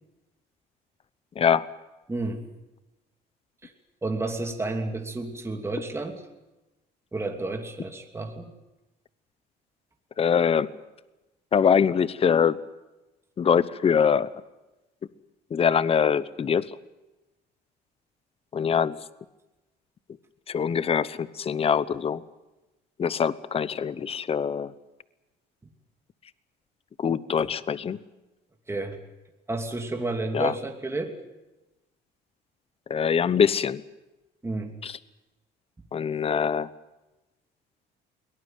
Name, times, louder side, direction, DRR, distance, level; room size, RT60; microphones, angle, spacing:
voice 1, 2.1-2.5 3.6-3.7 4.0-6.2 7.1-8.5 27.4-27.5 28.7-29.0 29.5-31.1 34.4-34.7, right 2 dB, 15° right, 3 dB, 2.8 m, -31 dB
voice 2, 10.2-10.7 11.5-12.6 13.4-14.3 15.5-16.7 18.5-19.0 20.5-22.2 23.0-24.7 27.0-28.0 30.3-30.5 32.9-33.8 34.8-34.9 35.9-36.7, left 7 dB, 30° left, 17 dB, 0.9 m, -23 dB
22.5 x 18.0 x 9.2 m, 1.0 s
cardioid pair, 110°, 18 cm